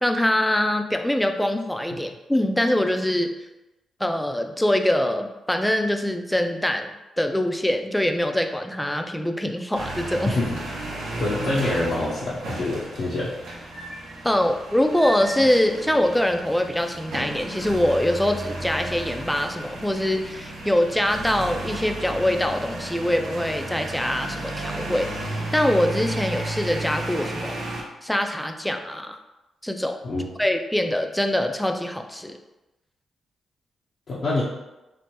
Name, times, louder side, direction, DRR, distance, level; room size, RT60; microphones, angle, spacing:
voice 1, 0.0-3.3 4.0-10.4 14.2-27.6 28.0-29.2 29.6-30.0 30.4-32.4, left 1 dB, 5° left, 5 dB, 0.3 m, -23 dB
sound 1, 9.7-27.8, right 2 dB, 80° right, 0.6 m, -33 dB
voice 2, 10.3-10.6 11.2-13.3 30.0-30.2 34.1-34.4, left 2 dB, 65° left, -7 dB, 0.6 m, -25 dB
3.2 x 2.0 x 2.9 m, 1.0 s
supercardioid pair, 50°, 0 cm